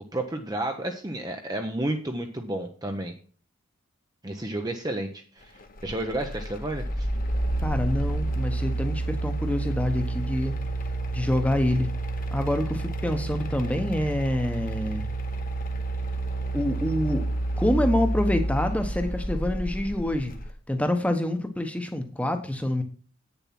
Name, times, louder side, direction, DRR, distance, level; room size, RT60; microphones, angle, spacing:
voice 1, 0.1-3.1 4.2-7.1, right 1 dB, 15° right, 4 dB, 0.7 m, -31 dB
sound 1, 5.8-20.5, right 2 dB, 40° left, 1.0 m, -29 dB
voice 2, 7.6-10.6 11.1-11.9 12.3-15.0 16.5-17.3 17.6-20.3 20.7-22.8, left 1 dB, 5° left, 6 dB, 1.0 m, -26 dB
8.8 x 7.0 x 5.9 m, 0.41 s
head